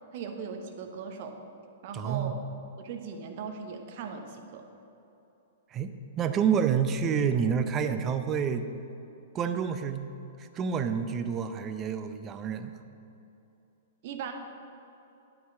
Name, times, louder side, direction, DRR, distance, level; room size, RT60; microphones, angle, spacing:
voice 1, 0.1-1.3 1.8-2.3 2.8-4.6 14.0-14.3, right 6 dB, 50° right, 4 dB, 1.2 m, -38 dB
voice 2, 1.9-2.3 5.7-8.7 9.3-10.1 10.4-12.7, right 7 dB, 25° right, 9 dB, 0.7 m, -28 dB
9.5 x 8.4 x 5.8 m, 2.9 s
figure-of-eight pair, 110°, 0 cm